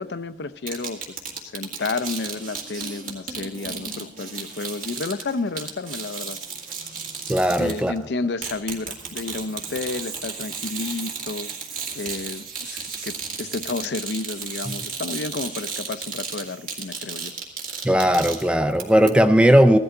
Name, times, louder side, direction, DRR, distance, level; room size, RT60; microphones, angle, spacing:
voice 1, 0.0-6.4 7.5-11.5 11.9-17.3, left 3 dB, 70° left, 14 dB, 0.6 m, -31 dB
sound 1, 0.7-8.0 8.4-18.8 19.1-19.2, right 5 dB, 45° right, 2.2 m, -34 dB
voice 2, 7.3-7.9 17.8-19.8, equal, 5° right, 9 dB, 0.4 m, -17 dB
16.0 x 12.5 x 3.8 m, 0.89 s
head